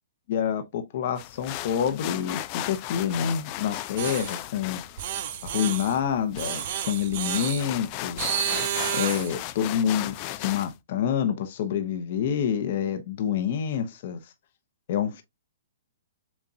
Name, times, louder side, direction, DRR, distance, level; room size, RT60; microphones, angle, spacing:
voice 1, 0.3-4.8 5.4-8.2 8.9-14.2 14.9-15.2, left 8 dB, 55° left, 0.9 m, -27 dB
sound 1, 1.2-10.7, left 15 dB, 35° left, 0.4 m, -37 dB
sound 2, 4.0-4.4 5.0-6.0 6.4-7.7 8.2-9.4, right 10 dB, 50° right, 0.6 m, -30 dB
7.2 x 2.4 x 2.7 m
hypercardioid pair, 140°, 0 cm